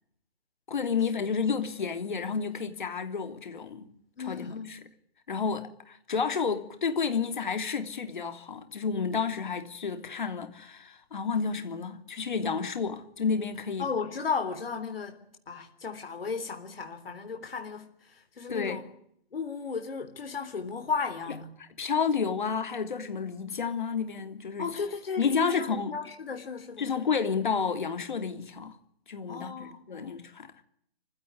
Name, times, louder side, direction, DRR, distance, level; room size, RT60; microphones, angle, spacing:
voice 1, 0.7-3.9 4.2-4.8 5.3-13.8 18.5-18.8 21.8-24.7 25.2-25.9 26.8-28.8 29.1-30.5, left 5 dB, 50° left, 3.2 m, -30 dB
voice 2, 4.2-4.7 13.8-18.8 19.3-21.5 24.6-26.9 29.3-30.2, left 5 dB, 65° left, 3.7 m, -35 dB
25.5 x 16.0 x 9.6 m
hypercardioid pair, 170°, 31 cm